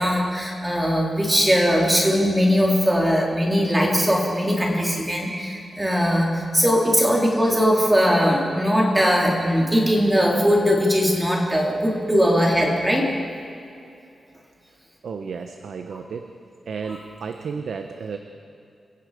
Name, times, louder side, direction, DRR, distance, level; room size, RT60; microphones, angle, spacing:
voice 1, 0.0-13.1 15.9-16.0, equal, 10° right, -2 dB, 3.8 m, -20 dB
voice 2, 15.0-16.3 16.7-18.2, right 5 dB, 75° right, 6 dB, 1.1 m, -32 dB
29.0 x 17.5 x 5.2 m, 2.6 s
wide cardioid pair, 135°, 0 cm